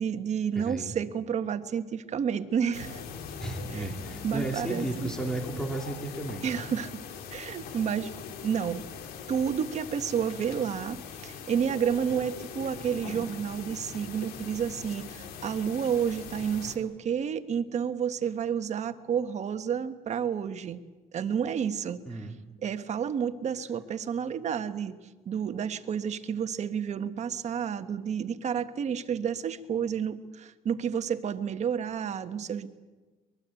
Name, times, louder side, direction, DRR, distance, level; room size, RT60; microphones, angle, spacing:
voice 1, 0.0-3.0 3.7-3.9 4.2-5.1 6.4-7.0 7.3-8.1 8.4-8.9 9.3-20.8 21.1-22.3 22.6-24.9 25.2-32.7, right 7 dB, 50° right, 9 dB, 1.5 m, -30 dB
voice 2, 0.6-0.9 3.4-6.4 22.1-22.4, right 1 dB, 5° left, 3 dB, 3.5 m, -34 dB
sound 1, 2.7-16.8, left 6 dB, 85° left, 2.9 m, -42 dB
23.5 x 21.5 x 9.1 m, 1.3 s
cardioid pair, 120°, 15 cm